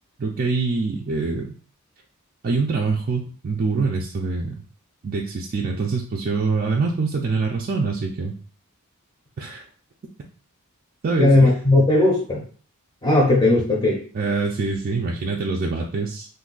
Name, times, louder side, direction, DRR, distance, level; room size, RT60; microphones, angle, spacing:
voice 1, 0.2-1.5 2.4-4.5 5.0-8.3 9.4-9.6 11.0-11.5 14.1-16.3, right 4 dB, 40° right, -1 dB, 0.4 m, -24 dB
voice 2, 11.2-12.4 13.0-14.0, left 2 dB, 20° left, -1 dB, 0.6 m, -17 dB
2.6 x 2.2 x 3.8 m, 0.42 s
head